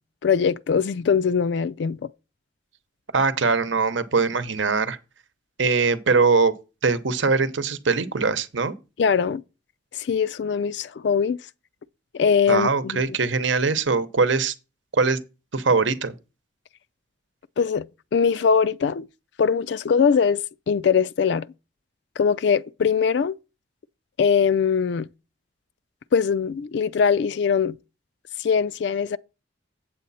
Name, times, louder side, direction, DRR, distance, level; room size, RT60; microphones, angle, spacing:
voice 1, 0.2-2.0 9.0-9.4 9.9-11.4 12.1-13.0 17.6-17.9 18.1-19.1 19.4-21.5 22.2-23.3 24.2-25.1 26.1-27.8 28.4-29.2, left 6 dB, 65° left, 0.4 m, -21 dB
voice 2, 3.1-5.0 5.6-6.5 6.8-8.7 12.5-14.5 14.9-15.2 15.5-16.1, right 4 dB, 80° right, 0.9 m, -21 dB
8.3 x 7.8 x 4.2 m
head